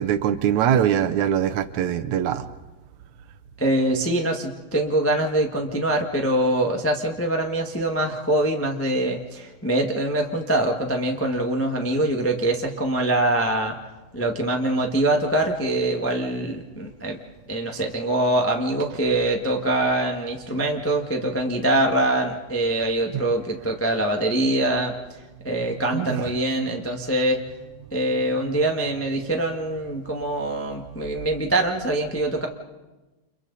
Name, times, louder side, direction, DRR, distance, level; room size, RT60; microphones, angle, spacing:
voice 1, 0.0-2.5 25.8-26.3 28.1-28.2, right 9 dB, 75° right, 9 dB, 2.1 m, -23 dB
voice 2, 3.6-13.7 14.1-17.2 17.5-24.9 25.4-27.4 27.9-32.5, right 1 dB, 10° left, 1 dB, 0.9 m, -24 dB
30.0 x 28.5 x 4.1 m, 1.1 s
omnidirectional pair, 3.5 m